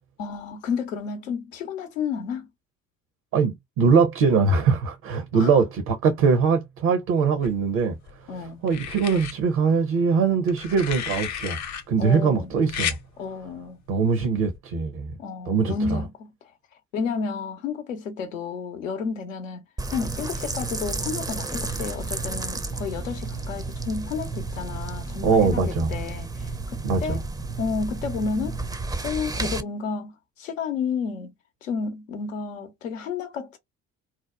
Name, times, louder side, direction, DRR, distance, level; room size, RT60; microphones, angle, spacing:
voice 1, 0.2-2.5 5.3-5.5 8.3-8.6 12.0-12.5 13.2-13.8 15.2-16.3 16.9-19.6 19.9-26.5 27.0-27.2 27.6-28.6 29.0-30.1 30.4-31.3 31.6-33.6, left 5 dB, 85° left, 0.7 m, -31 dB
voice 2, 3.3-7.9 8.6-11.6 11.9-12.9 13.9-15.1 15.5-16.0 25.2-25.9 26.8-27.2, right 5 dB, 60° right, 0.7 m, -22 dB
sound 1, 7.4-8.1 8.7-9.3 10.5-11.8 12.7-13.0 14.4-14.6, left 9 dB, 45° left, 0.7 m, -32 dB
sound 2, 19.8-29.6, right 3 dB, 10° right, 0.5 m, -32 dB
2.8 x 2.0 x 2.3 m
figure-of-eight pair, 45°, 38 cm